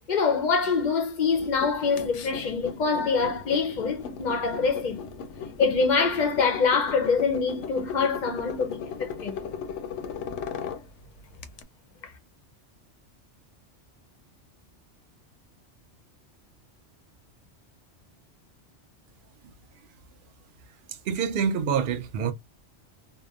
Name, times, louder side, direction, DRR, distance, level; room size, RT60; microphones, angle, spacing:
voice 1, 0.1-5.0 5.6-9.4 12.0-12.1, left 5 dB, 55° left, 0.5 m, -25 dB
sound 1, 1.3-11.6, left 6 dB, 90° left, 0.9 m, -37 dB
voice 2, 21.1-22.3, right 7 dB, 60° right, 0.6 m, -26 dB
2.8 x 2.0 x 2.3 m
omnidirectional pair, 1.2 m